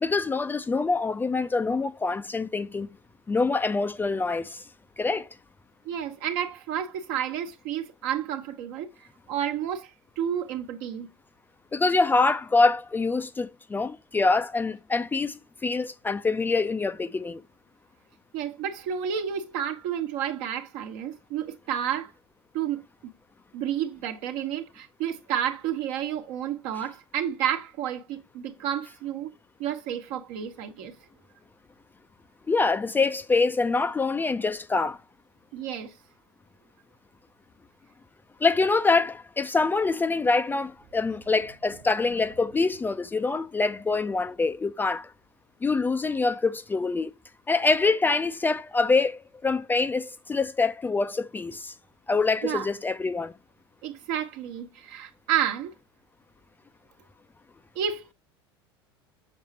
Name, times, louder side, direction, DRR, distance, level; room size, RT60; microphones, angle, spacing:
voice 1, 0.0-2.9 3.3-4.6 5.0-5.3 11.7-17.4 32.5-35.0 38.4-45.1 45.6-47.1 47.5-51.7 52.1-53.3, left 3 dB, 15° left, 0.5 m, -25 dB
voice 2, 5.8-9.9 10.2-11.1 18.3-22.1 22.5-22.8 23.5-29.3 29.6-30.9 35.5-35.9 52.4-52.7 53.8-55.7 57.7-58.1, right 9 dB, 55° right, 1.2 m, -30 dB
7.2 x 6.5 x 2.8 m
figure-of-eight pair, 70°, 13 cm